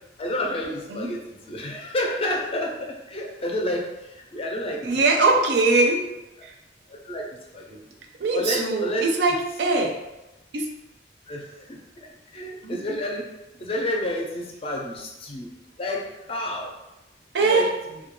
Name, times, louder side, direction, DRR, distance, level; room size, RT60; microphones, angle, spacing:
voice 1, 0.2-1.2 1.5-5.2 6.9-7.2 7.5-7.8 8.3-9.1 11.3-11.8 12.3-13.3 13.6-15.5 15.8-16.7 17.4-17.7, left 1 dB, 30° left, -1 dB, 0.4 m, -29 dB
voice 2, 4.8-6.1 6.4-6.5 8.2-10.0 10.5-10.7 12.6-12.8 17.3-17.7, right 3 dB, 65° right, 2 dB, 0.4 m, -21 dB
2.2 x 2.1 x 3.0 m, 0.98 s
head